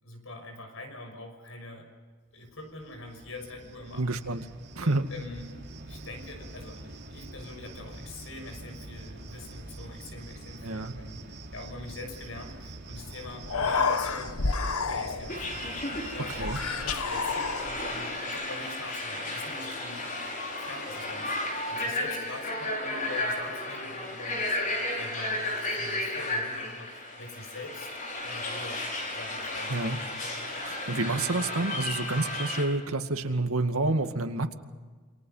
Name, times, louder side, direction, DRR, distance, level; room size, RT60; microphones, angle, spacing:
voice 1, 0.0-1.9 2.3-4.1 4.8-5.6 5.9-14.4 14.9-20.1 20.6-27.9 28.2-28.8 29.1-29.9, left 2 dB, 70° left, 5 dB, 6.1 m, -44 dB
Cricket, 2.5-18.2, right 2 dB, 50° right, 3.2 m, -45 dB
voice 2, 3.9-4.4 4.8-5.1 10.6-10.9 16.4-16.6 29.7-30.0 30.7-34.5, right 2 dB, 85° right, 6 dB, 2.2 m, -28 dB
Human voice, 13.0-13.1 13.4-15.4 16.3-18.0, left 4 dB, 85° left, 1.3 m, -29 dB
sound 1, 15.3-32.6, left 1 dB, 40° left, 5.8 m, -33 dB
28.5 x 27.0 x 5.7 m, 1.4 s
head